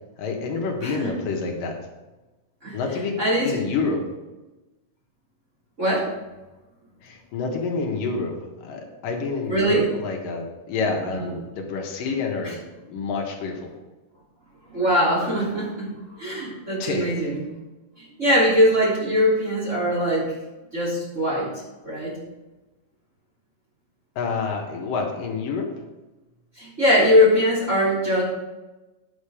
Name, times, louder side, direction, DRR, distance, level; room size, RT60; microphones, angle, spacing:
voice 1, 0.2-1.8 2.7-4.0 7.0-12.6 12.9-13.7 16.8-17.1 24.2-25.7, left 4 dB, 80° left, 1 dB, 3.0 m, -28 dB
voice 2, 3.2-3.6 5.8-6.1 9.5-9.9 12.4-12.5 14.7-17.4 18.0-20.3 20.7-21.5 21.8-22.1 26.6-28.2, equal, 20° right, -6 dB, 3.4 m, -21 dB
9.6 x 7.3 x 4.9 m, 1.1 s
omnidirectional pair, 3.9 m